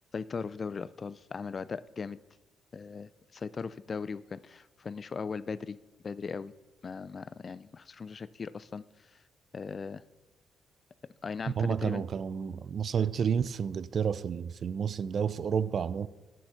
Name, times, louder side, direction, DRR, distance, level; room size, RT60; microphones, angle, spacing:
voice 1, 0.1-2.2 2.7-5.8 6.0-6.5 6.8-8.8 9.1-9.2 9.5-10.0 11.2-12.0, left 5 dB, 40° left, 0.4 m, -38 dB
voice 2, 11.6-16.1, right 7 dB, 50° right, 0.4 m, -30 dB
9.3 x 7.7 x 5.8 m
cardioid pair, 90°, 0 cm